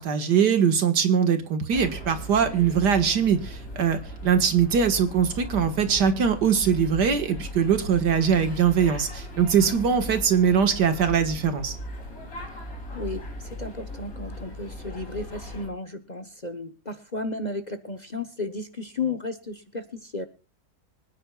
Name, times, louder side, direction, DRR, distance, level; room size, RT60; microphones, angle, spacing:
voice 1, 0.0-11.8, right 7 dB, 75° right, 8 dB, 2.2 m, -22 dB
sound 1, 1.7-15.7, equal, 55° left, 3.8 m, -38 dB
voice 2, 12.9-20.3, left 3 dB, 30° left, 8 dB, 1.0 m, -34 dB
25.0 x 9.8 x 2.4 m, 0.31 s
omnidirectional pair, 1.8 m